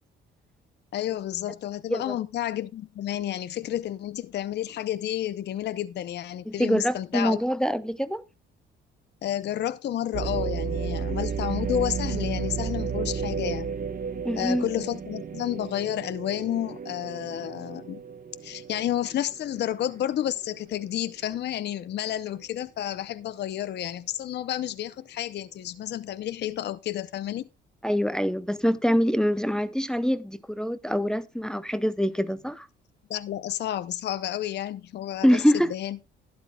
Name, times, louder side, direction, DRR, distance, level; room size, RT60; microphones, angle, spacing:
voice 1, 0.9-7.4 9.2-13.7 14.3-18.0 18.4-27.5 33.1-36.0, left 12 dB, 60° left, 0.6 m, -31 dB
voice 2, 6.5-8.2 14.2-14.7 27.8-32.7 35.2-35.7, equal, 5° left, 0.6 m, -25 dB
sound 1, 10.1-20.1 20.6-20.7 21.3-21.7, right 6 dB, 45° right, 0.8 m, -33 dB
12.0 x 11.5 x 2.2 m
cardioid pair, 90°, 20 cm